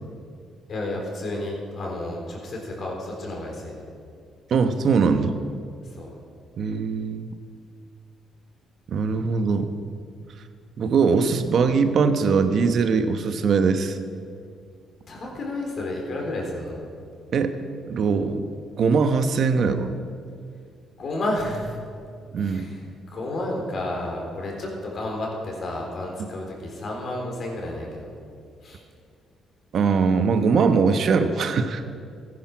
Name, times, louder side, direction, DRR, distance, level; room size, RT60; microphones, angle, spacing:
voice 1, 0.7-3.7 5.8-6.1 15.1-16.8 21.0-21.8 22.4-28.1 28.6-28.8, left 1 dB, 55° left, -1 dB, 3.8 m, -31 dB
voice 2, 4.5-5.4 6.6-7.3 8.9-9.7 10.8-14.0 17.3-17.6 17.9-18.5 18.8-19.9 22.3-22.7 29.7-31.8, right 5 dB, 60° right, 9 dB, 1.0 m, -21 dB
15.0 x 10.0 x 6.1 m, 2.3 s
cardioid pair, 90°, 0 cm